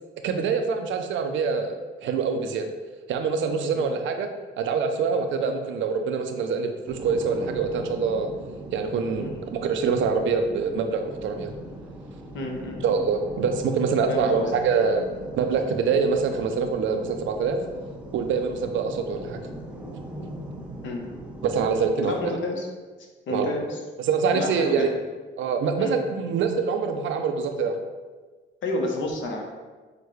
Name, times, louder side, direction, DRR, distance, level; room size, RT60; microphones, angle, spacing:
voice 1, 0.2-2.7 3.1-4.3 4.6-8.3 8.7-11.5 12.8-15.1 15.4-17.6 18.1-19.4 21.4-22.3 23.3-23.5 24.0-24.9 25.4-27.8, right 5 dB, 75° right, 6 dB, 0.5 m, -25 dB
sound 1, 6.9-21.9, right 1 dB, 5° right, 0.7 m, -40 dB
voice 2, 12.3-13.0 14.1-14.5 20.8-21.1 22.0-22.7 23.3-23.8 24.3-24.8 25.8-26.0 28.6-29.4, left 2 dB, 70° left, 1 dB, 0.9 m, -30 dB
6.5 x 2.2 x 3.1 m, 1.3 s
cardioid pair, 90°, 20 cm